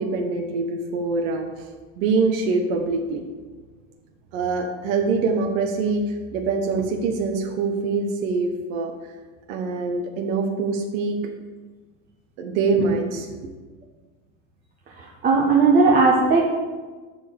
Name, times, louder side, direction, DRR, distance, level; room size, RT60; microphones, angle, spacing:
voice 1, 0.0-1.5 2.0-3.2 4.3-8.9 9.5-11.2 12.4-13.5, right 4 dB, 70° right, 2 dB, 1.4 m, -24 dB
voice 2, 15.2-16.4, right 4 dB, 20° right, -3 dB, 1.1 m, -16 dB
12.0 x 4.7 x 7.1 m, 1.4 s
supercardioid pair, 170°, 41 cm